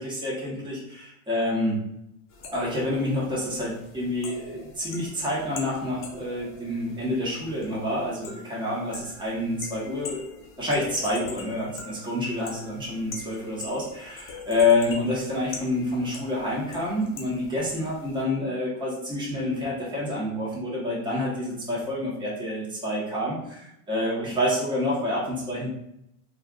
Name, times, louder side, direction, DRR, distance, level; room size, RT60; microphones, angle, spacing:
voice 1, 0.0-1.8 2.5-10.3 10.6-25.7, left 1 dB, 10° right, -5 dB, 1.1 m, -28 dB
sound 1, 2.3-18.2, left 4 dB, 35° left, 0.6 m, -43 dB
3.3 x 2.4 x 2.4 m, 0.80 s
supercardioid pair, 105°, 39 cm